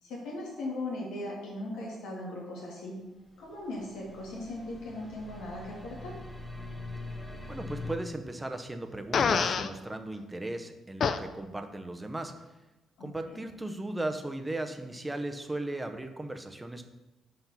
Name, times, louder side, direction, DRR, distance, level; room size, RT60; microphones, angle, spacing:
voice 1, 0.0-3.0 3.4-6.2 13.0-13.4, left 1 dB, 90° left, -4 dB, 2.2 m, -38 dB
sound 1, 3.2-7.9, left 2 dB, 20° left, 1.0 m, -43 dB
voice 2, 7.5-12.3 13.0-16.8, right 2 dB, 15° right, 6 dB, 0.7 m, -37 dB
Fart, 9.1-9.7 11.0-11.2, left 6 dB, 55° left, 0.4 m, -25 dB
5.7 x 4.4 x 5.7 m, 1.0 s
cardioid pair, 90°, 0 cm